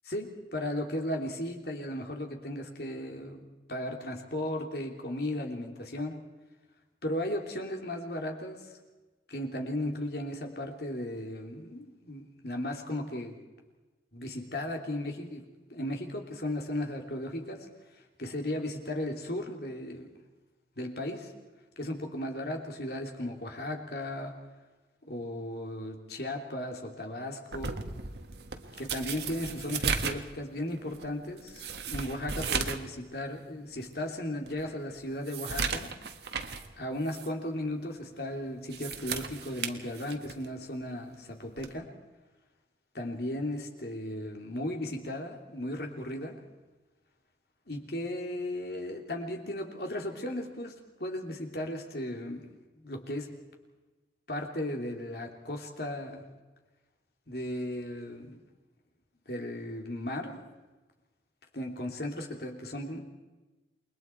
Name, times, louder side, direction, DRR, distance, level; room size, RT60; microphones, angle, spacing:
voice 1, 0.1-3.4 3.7-6.2 7.0-8.8 9.3-13.4 14.1-15.4 15.7-17.7 17.9-20.1 20.8-21.3 21.8-24.3 25.0-27.7 28.8-35.9 36.8-41.9 42.9-46.4 47.7-50.7 51.0-53.3 54.3-56.2 57.3-58.4 59.3-60.4 61.5-63.0, left 1 dB, 60° left, 2 dB, 3.0 m, -36 dB
sound 1, 27.5-32.9 33.3-33.4 33.9-34.0 34.5-36.7 37.1-37.3 38.5-40.5 41.6-41.8, right 5 dB, 70° right, 1.6 m, -35 dB
29.0 x 22.0 x 4.6 m, 1.2 s
head